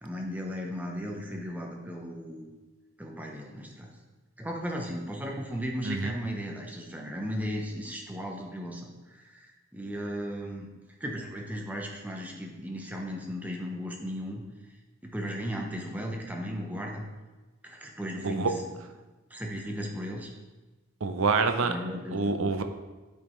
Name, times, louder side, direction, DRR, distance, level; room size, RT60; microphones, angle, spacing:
voice 1, 0.0-2.5 3.0-3.9 4.4-10.7 11.0-14.7 15.0-17.0 17.6-18.6 19.3-20.3 21.6-22.4, equal, 5° right, 0 dB, 0.7 m, -36 dB
voice 2, 21.0-21.7 22.1-22.6, right 4 dB, 75° right, 8 dB, 0.6 m, -26 dB
8.9 x 5.1 x 3.1 m, 1.2 s
head